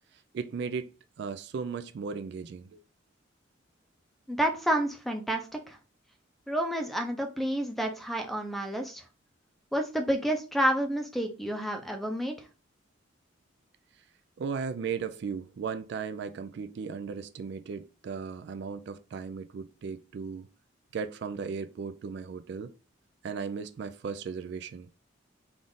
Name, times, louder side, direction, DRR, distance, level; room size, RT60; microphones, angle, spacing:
voice 1, 0.1-0.9 1.2-2.8 14.4-20.5 20.9-22.7 23.2-24.9, right 5 dB, 60° right, 0.3 m, -36 dB
voice 2, 4.3-5.8 6.5-9.0 9.7-12.5, right 1 dB, ahead, 0.5 m, -29 dB
3.6 x 2.4 x 3.8 m
head